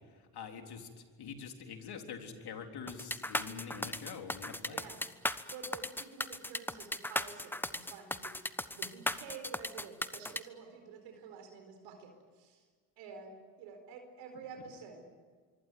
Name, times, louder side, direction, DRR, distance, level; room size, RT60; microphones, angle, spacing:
voice 1, 0.3-0.9 1.2-4.8, left 6 dB, 60° left, 4 dB, 3.9 m, -45 dB
sound 1, 2.9-10.4, left 1 dB, 5° left, 1.1 m, -36 dB
voice 2, 4.7-5.1 5.5-12.6 13.0-15.0, right 5 dB, 80° right, 5 dB, 4.5 m, -49 dB
25.0 x 24.5 x 9.4 m, 1.5 s
supercardioid pair, 65°, 43 cm